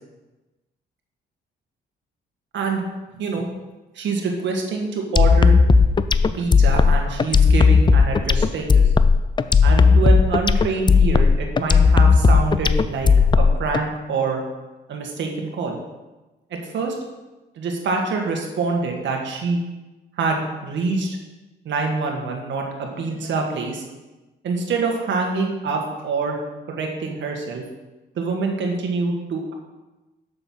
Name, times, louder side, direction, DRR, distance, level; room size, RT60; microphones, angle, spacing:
voice 1, 4.0-5.5 6.3-8.8 9.6-13.1 13.4-14.4 14.9-15.8 16.7-17.0 17.6-19.6 20.2-21.2 21.7-23.8 24.4-26.4 26.7-27.6 28.2-29.5, right 4 dB, 70° right, 1 dB, 1.9 m, -25 dB
sound 1, 5.2-13.8, left 5 dB, 25° left, 0.4 m, -15 dB
7.0 x 6.8 x 5.7 m, 1.1 s
cardioid pair, 90°, 20 cm